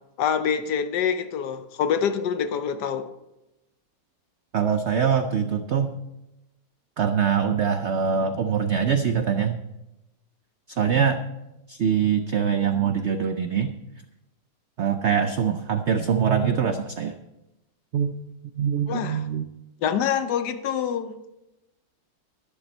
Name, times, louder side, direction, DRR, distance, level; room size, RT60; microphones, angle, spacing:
voice 1, 0.2-3.1 18.9-19.2 19.8-21.2, left 7 dB, 70° left, 1.3 m, -26 dB
voice 2, 4.5-5.9 7.0-9.6 10.7-11.2 11.7-13.7 14.8-17.1 17.9-18.1 18.6-19.5, right 7 dB, 85° right, 0.6 m, -23 dB
11.5 x 11.0 x 4.3 m
omnidirectional pair, 2.0 m